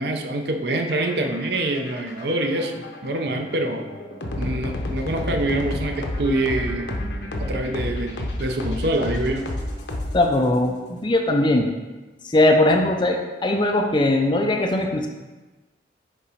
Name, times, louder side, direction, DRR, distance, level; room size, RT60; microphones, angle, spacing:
voice 1, 0.0-3.8 4.4-6.9 7.4-9.4, right 1 dB, 65° right, 4 dB, 0.6 m, -25 dB
sound 1, 0.8-10.6, left 1 dB, 75° left, 0.8 m, -30 dB
voice 2, 10.1-11.7 12.2-15.1, left 1 dB, 25° left, 3 dB, 0.5 m, -20 dB
5.4 x 3.9 x 4.9 m, 1.2 s
head